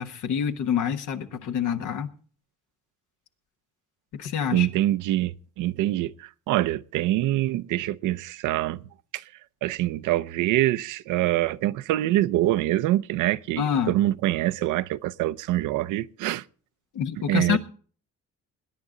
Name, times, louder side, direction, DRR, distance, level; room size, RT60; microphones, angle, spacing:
voice 1, 0.0-2.1 4.2-4.7 13.6-13.9 16.9-17.6, left 8 dB, 85° left, 1.3 m, -26 dB
voice 2, 4.5-8.8 9.1-9.2 9.6-16.4 17.2-17.6, right 15 dB, 90° right, 0.5 m, -25 dB
21.0 x 9.7 x 3.8 m
cardioid pair, 90°, 30 cm